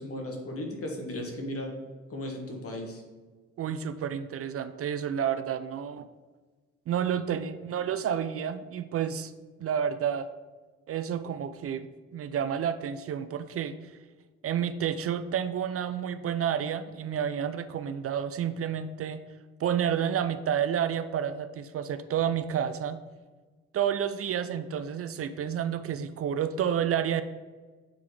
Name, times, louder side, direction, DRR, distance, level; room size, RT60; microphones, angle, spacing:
voice 1, 0.0-1.7 2.1-3.0, left 1 dB, 50° left, 1 dB, 1.7 m, -36 dB
voice 2, 3.6-6.1 6.9-9.3 9.6-10.3 10.9-11.9 12.1-13.8 14.4-19.2 19.6-23.0 23.7-27.2, right 8 dB, 50° right, 12 dB, 0.4 m, -30 dB
7.6 x 3.6 x 4.8 m, 1.3 s
cardioid pair, 90°, 30 cm